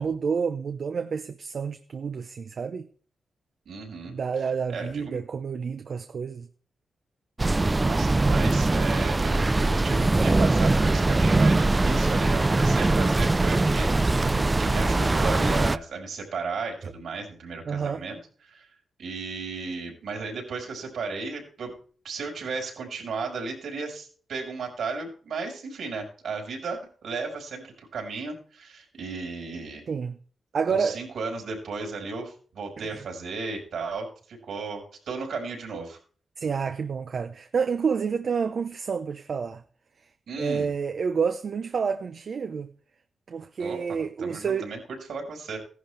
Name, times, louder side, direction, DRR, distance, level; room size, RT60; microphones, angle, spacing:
voice 1, 0.0-2.9 4.0-6.5 14.0-14.5 16.8-16.9 17.7-18.0 29.9-30.2 30.5-31.0 32.8-33.0 36.4-39.6 40.4-42.7 43.3-44.7, right 6 dB, 60° right, 0.8 m, -29 dB
voice 2, 3.7-4.2 4.7-5.2 7.8-18.2 18.5-18.7 19.0-21.7 22.0-29.8 30.7-36.0 40.3-40.7 43.6-43.8 44.2-45.6, right 4 dB, 80° right, 5.3 m, -35 dB
sound 1, 7.4-15.8, right 2 dB, 25° right, 0.4 m, -22 dB
16.0 x 11.0 x 3.4 m
cardioid pair, 80°, 0 cm